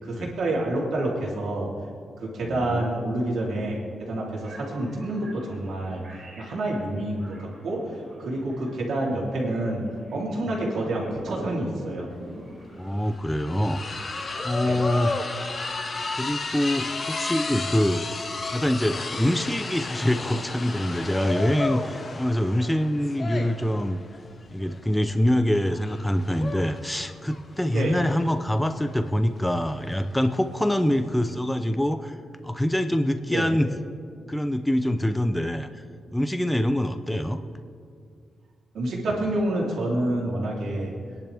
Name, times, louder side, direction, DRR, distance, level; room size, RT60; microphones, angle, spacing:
voice 1, 0.0-1.7 2.2-6.0 6.4-7.9 8.2-9.8 10.1-12.1 14.6-14.8 27.7-27.9 33.3-33.5 38.7-40.9, right 1 dB, 75° right, -3 dB, 3.4 m, -28 dB
voice 2, 2.4-3.1 12.7-13.8 14.4-15.1 16.2-18.2 18.5-24.0 24.5-32.2 32.4-33.7 34.3-35.7 36.1-37.4, left 1 dB, 5° left, 7 dB, 0.6 m, -25 dB
sound 1, 4.4-13.8, right 1 dB, 45° right, 3.6 m, -42 dB
sound 2, 12.2-12.3 12.5-31.4, left 3 dB, 35° left, 1.0 m, -33 dB
25.5 x 10.5 x 3.5 m, 2.2 s
wide cardioid pair, 140°, 0 cm